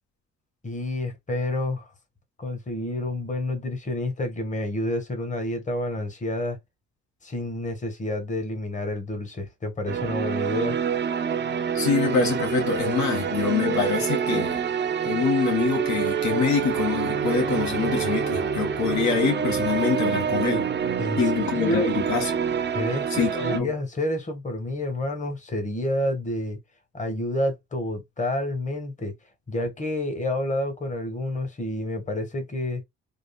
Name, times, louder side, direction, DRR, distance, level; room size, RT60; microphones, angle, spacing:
voice 1, 0.6-1.9 2.4-6.6 7.2-10.8 21.0-21.9 22.7-26.6 26.9-29.2 29.5-32.8, left 1 dB, 25° left, 1.2 m, -29 dB
sound 1, 9.9-23.6, right 7 dB, 35° right, 0.6 m, -27 dB
voice 2, 11.7-14.6 15.0-20.7 21.2-22.3 23.1-23.7, left 5 dB, 70° left, 1.6 m, -25 dB
3.6 x 2.4 x 2.2 m
cardioid pair, 90°, 30 cm